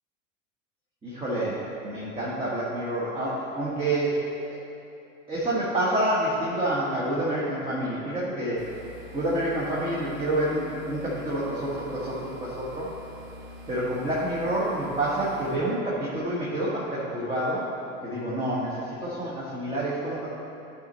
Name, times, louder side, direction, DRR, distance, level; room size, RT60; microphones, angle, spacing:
voice 1, 1.0-1.6 1.8-4.2 5.3-8.6 9.1-12.9 13.7-17.7 18.0-20.3, right 1 dB, 15° right, -8 dB, 1.5 m, -28 dB
sound 1, 8.6-15.6, left 2 dB, 50° right, 1.2 m, -45 dB
12.5 x 4.4 x 4.1 m, 2.7 s
figure-of-eight pair, 80°, 41 cm